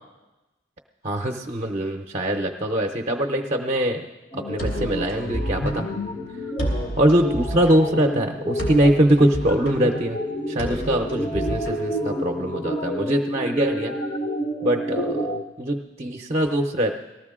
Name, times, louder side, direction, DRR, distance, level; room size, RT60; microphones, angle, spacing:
voice 1, 1.0-4.1 4.3-5.8 7.0-10.2 10.5-13.9 14.6-16.9, right 1 dB, 35° right, 1 dB, 0.6 m, -22 dB
sound 1, 4.3-15.4, equal, 30° left, 0.7 m, -29 dB
sound 2, 4.6-12.5, right 1 dB, 85° left, 3.2 m, -32 dB
18.5 x 13.5 x 3.7 m, 1.1 s
head